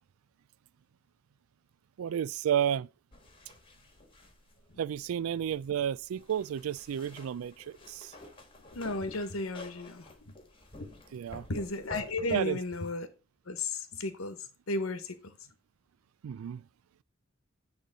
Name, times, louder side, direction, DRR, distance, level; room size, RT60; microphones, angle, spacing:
voice 1, 2.0-2.9 4.8-8.1 11.1-11.5 12.3-12.6 16.2-16.6, right 9 dB, 85° right, 0.3 m, -32 dB
sound 1, 3.1-12.9, left 2 dB, 25° left, 1.6 m, -51 dB
voice 2, 8.7-10.3 10.8-10.9 11.5-13.1 13.5-14.4 14.7-15.4, left 2 dB, 90° left, 1.1 m, -34 dB
9.0 x 3.3 x 4.9 m
head